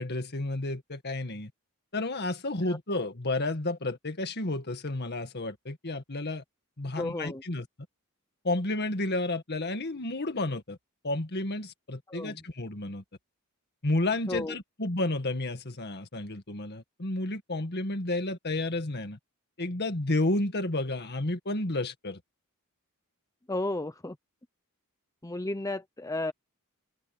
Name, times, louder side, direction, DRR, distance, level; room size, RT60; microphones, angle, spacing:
voice 1, 0.0-1.5 1.9-6.4 6.8-7.7 8.4-10.8 11.0-13.0 13.8-19.2 19.6-22.2, left 2 dB, 50° left, 1.9 m, -31 dB
voice 2, 6.9-7.4 12.1-12.4 14.3-14.5 23.5-24.2 25.2-26.3, left 2 dB, 15° left, 0.8 m, -33 dB
open air
head